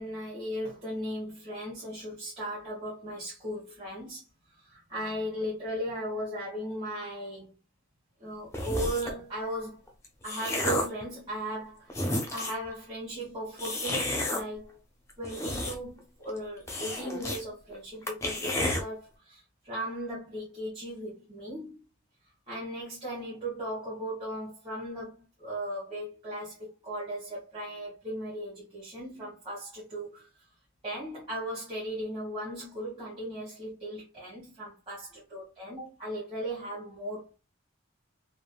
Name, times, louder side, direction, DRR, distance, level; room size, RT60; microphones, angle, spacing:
voice 1, 0.0-4.2 4.6-7.5 8.2-9.8 10.2-14.8 15.2-21.7 22.5-30.3 30.8-37.3, right 1 dB, 25° right, 1.0 m, -37 dB
sound 1, 8.5-9.2 9.9-11.0 11.6-11.7 11.9-12.7 13.6-14.4 15.1-16.0 16.3-16.4 16.7-17.4 17.7-17.8 18.1-18.8, left 1 dB, 15° left, 0.5 m, -31 dB
3.4 x 2.0 x 2.2 m
head